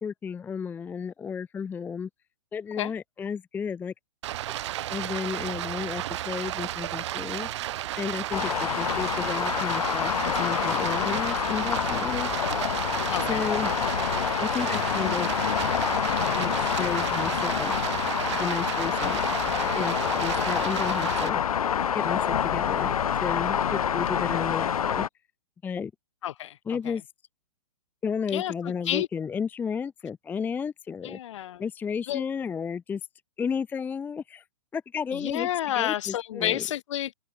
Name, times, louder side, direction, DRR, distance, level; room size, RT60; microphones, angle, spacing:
voice 1, 0.0-2.1 2.5-3.9 4.9-7.5 8.0-12.3 13.3-13.7 14.4-15.4 16.2-17.7 18.3-19.2 19.7-21.4 21.9-25.1 25.6-25.9 26.7-27.0 28.0-31.2 31.6-33.0 33.4-34.4 34.7-35.5 35.7-36.6, left 6 dB, 10° left, 0.6 m, -33 dB
Stream, 4.2-21.3, right 14 dB, 50° right, 1.1 m, -33 dB
sound 1, 8.3-25.1, left 8 dB, 80° left, 0.5 m, -27 dB
voice 2, 13.1-13.5 26.2-26.9 28.3-29.1 31.0-31.6 32.1-32.2 35.1-37.1, left 12 dB, 55° left, 4.1 m, -30 dB
hypercardioid pair, 125°, 18 cm